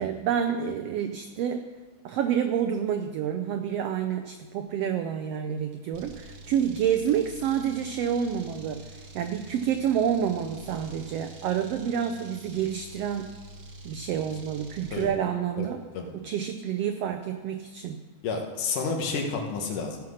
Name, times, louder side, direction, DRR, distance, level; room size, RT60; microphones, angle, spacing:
voice 1, 0.0-1.7 2.0-13.3 13.8-15.8 16.1-18.0, right 8 dB, 90° right, 7 dB, 1.3 m, -28 dB
sound 1, 5.9-15.1, right 2 dB, 45° right, 1.2 m, -46 dB
voice 2, 15.6-16.1 18.2-20.0, left 4 dB, 90° left, 2 dB, 2.9 m, -30 dB
15.0 x 5.9 x 6.4 m, 1.3 s
omnidirectional pair, 3.5 m